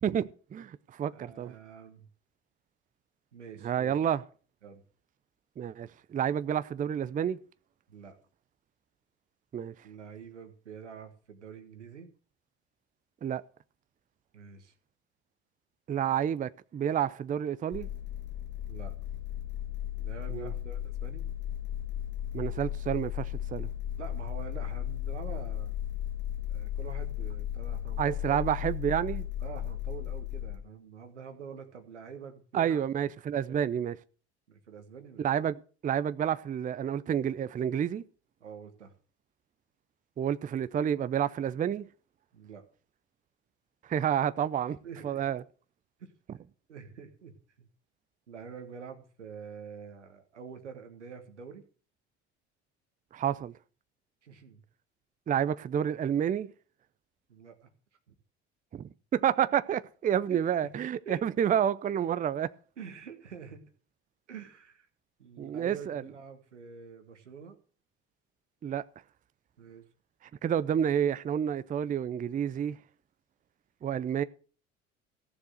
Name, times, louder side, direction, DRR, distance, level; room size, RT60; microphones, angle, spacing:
voice 1, 0.0-1.5 3.6-4.2 5.6-7.4 9.5-9.7 13.2-13.4 15.9-17.9 20.3-20.5 22.3-23.7 28.0-29.3 32.5-34.0 35.2-35.6 35.8-38.0 40.2-41.9 43.9-44.8 45.0-45.4 53.1-53.5 55.3-56.5 58.7-62.5 65.4-66.0 68.6-68.8 70.4-72.8 73.8-74.2, right 9 dB, 25° right, 0.5 m, -29 dB
voice 2, 1.1-2.1 3.3-3.9 4.6-4.8 7.9-8.2 9.8-12.1 14.3-14.7 18.7-18.9 20.0-21.2 24.0-25.7 26.5-28.4 29.4-32.8 33.5-33.7 34.5-35.3 38.4-38.9 42.3-42.6 44.8-45.4 46.0-46.1 46.7-47.3 47.6-47.7 48.3-51.6 54.2-54.6 57.3-57.7 58.1-58.2 60.3-60.4 61.0-61.2 62.8-63.6 64.3-64.9 65.2-67.6 69.6-69.8, right 6 dB, 90° right, 1.5 m, -46 dB
sound 1, 17.7-30.6, left 11 dB, 30° left, 1.5 m, -35 dB
14.5 x 6.9 x 6.3 m
hypercardioid pair, 65°, 34 cm